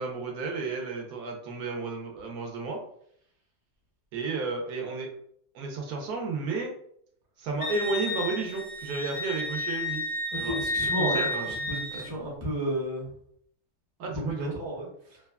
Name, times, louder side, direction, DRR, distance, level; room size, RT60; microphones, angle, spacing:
voice 1, 0.0-2.8 4.1-5.1 5.5-6.7 7.4-10.0 10.4-10.6 10.9-11.6 11.9-12.1 14.0-14.5, right 4 dB, 75° right, 1 dB, 1.1 m, -32 dB
Wind instrument woodwind instrument, 7.6-12.1, left 1 dB, 60° left, 0.6 m, -31 dB
voice 2, 10.3-13.1 14.1-15.2, equal, 20° right, -4 dB, 0.6 m, -33 dB
3.1 x 2.2 x 2.2 m, 0.67 s
omnidirectional pair, 1.7 m